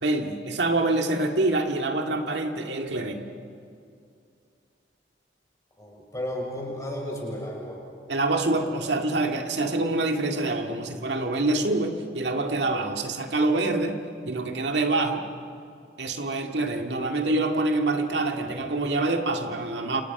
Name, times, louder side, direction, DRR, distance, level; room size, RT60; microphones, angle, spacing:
voice 1, 0.0-3.3 8.1-14.0 14.3-15.2 16.0-20.0, right 2 dB, 85° right, 4 dB, 2.1 m, -26 dB
voice 2, 5.8-7.8, left 1 dB, 20° left, -1 dB, 6.7 m, -33 dB
29.5 x 28.0 x 6.0 m, 2.4 s
head